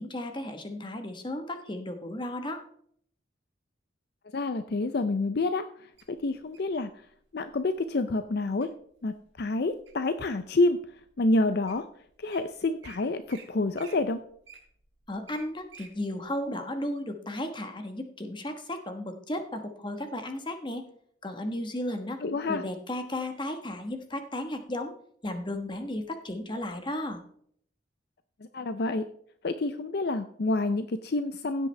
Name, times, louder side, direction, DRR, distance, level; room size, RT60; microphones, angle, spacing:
voice 1, 0.0-2.6 15.1-20.9 21.2-22.2 22.5-24.9 25.2-27.2, left 1 dB, 25° left, 6 dB, 1.2 m, -34 dB
voice 2, 4.3-6.9 7.3-8.7 9.0-10.8 11.2-11.9 12.2-14.2 22.2-22.6 28.5-29.0 29.4-31.7, left 2 dB, 50° left, 10 dB, 0.5 m, -28 dB
Wild animals, 6.0-6.7 7.4-7.7 8.2-8.7 9.2-10.1 10.7-10.8 11.4-11.5 11.7-11.8 12.1-12.4 12.8-13.0 13.3-13.4 13.7-15.9 16.4-16.5, right 6 dB, 65° right, 3.4 m, -50 dB
16.0 x 8.2 x 3.3 m, 0.64 s
head